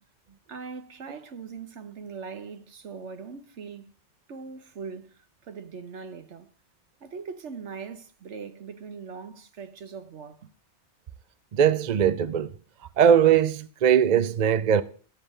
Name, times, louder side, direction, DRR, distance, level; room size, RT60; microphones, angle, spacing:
voice 1, 0.5-3.9 4.3-6.5 7.0-10.5, right 5 dB, 70° right, 1.3 m, -41 dB
voice 2, 11.5-12.5 13.0-14.8, right 8 dB, 45° right, 0.6 m, -20 dB
13.0 x 7.7 x 4.9 m
omnidirectional pair, 1.2 m